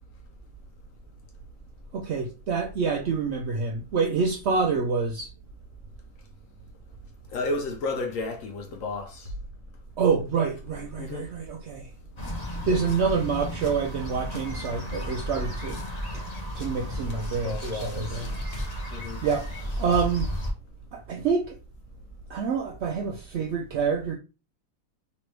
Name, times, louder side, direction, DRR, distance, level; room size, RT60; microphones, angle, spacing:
voice 1, 1.9-5.3 10.0-11.9 12.4-15.8 16.1-16.3 16.5-18.3 19.2-19.5 19.8-20.3 20.9-21.5 22.3-24.1, right 5 dB, 75° right, 0.6 m, -27 dB
voice 2, 7.3-9.3 11.0-11.3 17.4-18.2 18.9-19.2, left 2 dB, 70° left, 0.8 m, -32 dB
sound 1, 12.2-20.5, equal, 35° left, 0.7 m, -33 dB
3.3 x 3.0 x 3.1 m
omnidirectional pair, 1.8 m